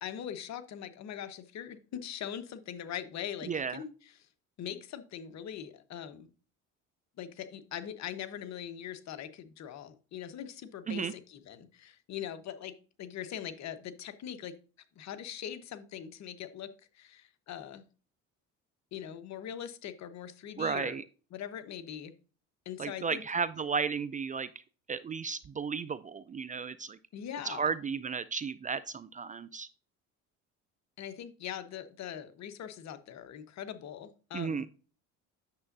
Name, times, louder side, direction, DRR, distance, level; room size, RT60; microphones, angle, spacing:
voice 1, 0.0-3.9 4.6-6.3 7.2-14.6 15.0-17.8 18.9-21.0 21.3-22.1 22.6-23.2 27.1-27.7 31.0-34.7, left 9 dB, 55° left, 10 dB, 1.2 m, -41 dB
voice 2, 3.5-3.8 10.9-11.1 20.6-21.0 22.8-24.5 24.9-27.0 27.4-29.7 34.3-34.7, right 5 dB, 25° right, 16 dB, 0.4 m, -34 dB
8.8 x 6.9 x 2.6 m, 0.37 s
cardioid pair, 100°, 32 cm